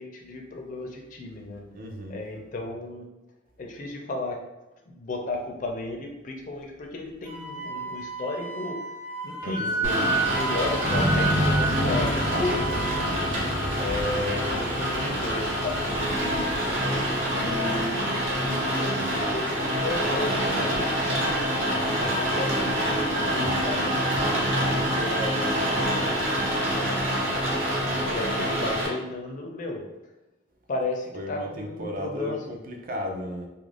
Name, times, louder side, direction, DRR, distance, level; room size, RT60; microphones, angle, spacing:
voice 1, 0.0-1.6 2.1-3.1 3.6-4.4 4.9-8.8 9.2-13.2 13.8-16.6 17.3-21.4 22.1-24.6 24.9-25.4 25.9-26.9 28.1-29.8 30.7-32.5, left 2 dB, 40° left, 1 dB, 0.4 m, -34 dB
voice 2, 1.7-2.2 9.4-10.4 31.1-33.5, equal, 45° right, 2 dB, 0.4 m, -35 dB
Wind instrument woodwind instrument, 7.3-13.1, right 3 dB, 25° right, 0.9 m, -31 dB
Rain, 9.8-28.9, equal, 80° right, 0.8 m, -26 dB
sound 1, 10.8-17.4, equal, 90° left, 0.7 m, -30 dB
2.4 x 2.1 x 3.2 m, 1.0 s
head